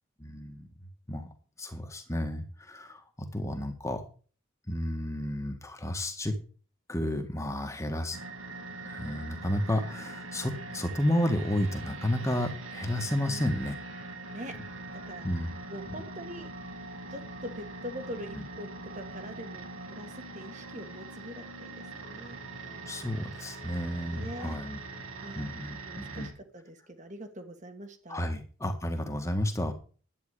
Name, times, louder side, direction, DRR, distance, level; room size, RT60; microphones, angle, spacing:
voice 1, 0.2-0.7 1.1-1.3 1.6-4.0 4.7-6.3 6.9-8.2 8.8-13.7 15.2-15.5 22.9-24.8 25.3-26.3 28.1-29.7, left 1 dB, 15° left, 6 dB, 1.7 m, -31 dB
sound 1, 8.1-26.3, right 2 dB, 85° right, 2.5 m, -42 dB
voice 2, 13.2-13.6 14.3-14.5 15.0-16.5 17.1-23.0 24.1-24.6 25.2-25.5 25.9-28.3, equal, 35° right, 7 dB, 1.7 m, -44 dB
11.0 x 9.2 x 4.9 m, 0.39 s
head